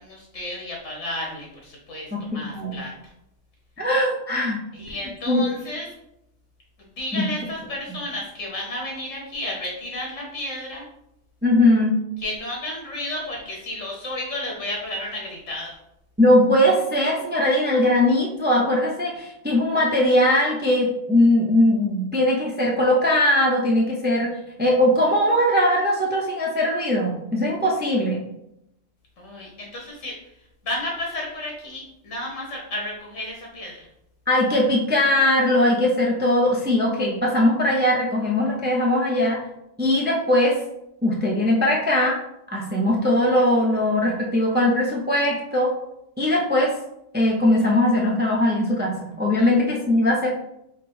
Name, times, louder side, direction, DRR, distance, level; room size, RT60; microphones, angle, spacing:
voice 1, 0.0-3.1 4.7-5.9 6.9-10.8 12.2-15.7 29.2-30.2 30.6-33.9 49.4-49.5, left 1 dB, 85° left, -2 dB, 1.4 m, -32 dB
voice 2, 2.1-2.7 3.8-4.6 5.3-5.4 7.1-7.2 11.4-12.0 16.2-24.3 24.6-28.2 34.3-39.4 39.8-40.6 41.0-42.2 42.5-45.7 46.2-46.7 47.1-50.3, left 1 dB, 15° right, -1 dB, 0.4 m, -20 dB
4.9 x 2.0 x 4.6 m, 0.82 s
omnidirectional pair, 1.3 m